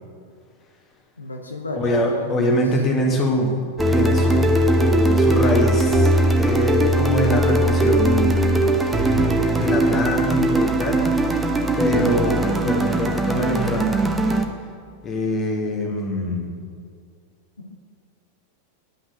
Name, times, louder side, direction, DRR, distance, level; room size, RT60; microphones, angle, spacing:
voice 1, 1.2-2.8 4.1-4.4 17.6-17.8, left 2 dB, 80° left, 2 dB, 0.9 m, -33 dB
voice 2, 1.8-3.5 3.9-6.1 6.4-11.1 11.8-14.1 15.0-16.5, equal, 25° left, 1 dB, 1.8 m, -24 dB
sound 1, 3.8-14.5, right 1 dB, 10° right, 0.8 m, -19 dB
10.5 x 6.0 x 6.5 m, 2.2 s
figure-of-eight pair, 90°, 0 cm